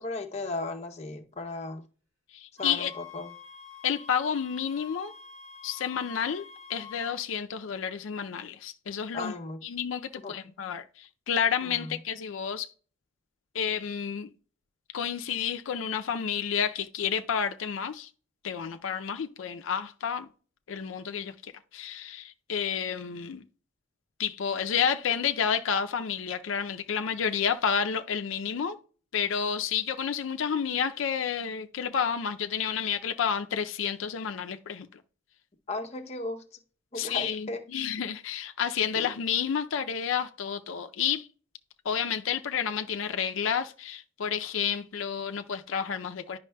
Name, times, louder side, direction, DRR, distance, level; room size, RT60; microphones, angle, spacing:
voice 1, 0.0-1.8 2.6-3.3 9.1-9.6 10.2-10.3 11.6-11.9 35.7-36.4 36.9-37.6 38.9-39.1, left 2 dB, 35° left, 0.7 m, -36 dB
voice 2, 2.3-2.9 3.8-5.1 5.6-6.4 6.7-9.3 9.6-12.7 13.5-14.3 14.9-18.1 18.4-20.3 20.7-23.4 24.2-28.8 29.1-35.0 37.0-41.3 41.8-46.4, left 7 dB, 80° left, 0.4 m, -30 dB
sound 1, 2.6-7.1, left 6 dB, 85° right, 2.2 m, -47 dB
10.5 x 5.4 x 2.2 m
head